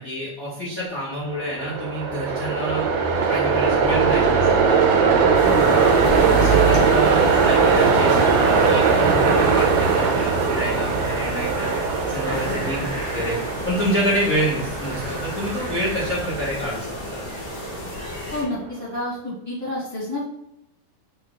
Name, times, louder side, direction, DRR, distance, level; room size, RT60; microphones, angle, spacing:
voice 1, 0.0-2.9 3.3-4.8 5.4-6.0 6.4-11.7 12.1-12.8 13.1-13.4 13.6-17.3, equal, 65° left, -8 dB, 0.8 m, -27 dB
Train, 1.3-18.5, right 5 dB, 85° right, 2.2 m, -21 dB
Bicycle, 2.2-16.8, right 4 dB, 70° right, 0.9 m, -32 dB
sound 1, 5.3-18.4, left 2 dB, 85° left, 1.1 m, -34 dB
voice 2, 18.3-20.2, left 1 dB, 35° right, -10 dB, 1.1 m, -29 dB
5.2 x 2.4 x 3.9 m, 0.81 s
omnidirectional pair, 3.7 m